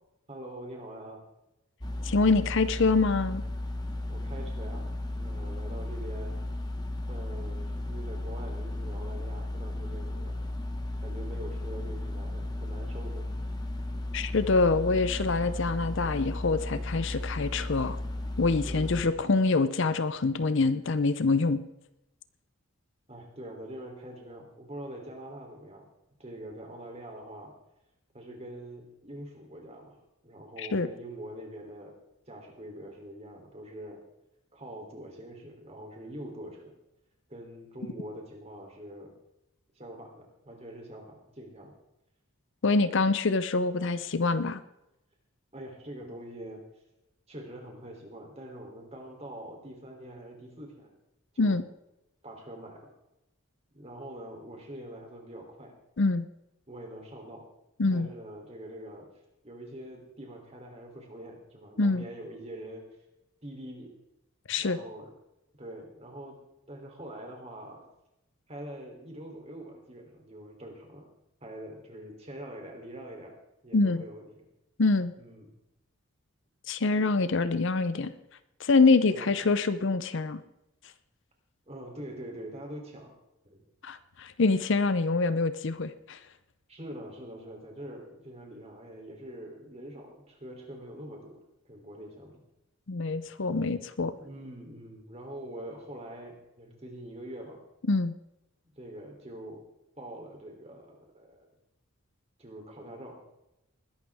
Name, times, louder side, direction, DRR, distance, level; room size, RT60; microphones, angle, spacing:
voice 1, 0.3-1.2 4.1-6.3 7.1-10.4 11.0-13.3 18.6-19.1 23.1-25.9 26.2-27.5 28.1-30.0 30.2-32.0 32.3-34.0 34.5-36.7 37.3-39.1 39.7-41.7 42.8-43.0 45.5-46.6 47.3-50.9 51.3-51.6 52.2-52.8 53.7-55.7 56.7-57.4 57.9-59.1 59.4-62.9 63.4-63.9 64.6-65.1 65.6-66.4 66.7-67.8 68.5-71.1 71.4-73.4 73.6-74.4 75.2-75.5 76.9-77.2 79.1-79.3 81.7-83.1 83.4-83.6 86.7-92.4 94.2-97.6 98.8-99.6 99.9-101.5 102.4-103.2, right 1 dB, 30° right, 1 dB, 3.2 m, -44 dB
sound 1, 1.8-19.0, left 1 dB, 20° left, 1.1 m, -35 dB
voice 2, 2.0-3.4 14.1-18.0 18.4-21.6 30.6-30.9 42.6-44.6 51.4-51.6 56.0-56.3 57.8-58.1 61.8-62.0 64.5-64.8 73.7-74.0 74.8-75.1 76.7-78.1 78.6-80.4 83.8-86.2 92.9-94.1 97.9-98.1, left 3 dB, 55° left, 13 dB, 0.6 m, -25 dB
20.5 x 11.5 x 3.5 m, 0.88 s
head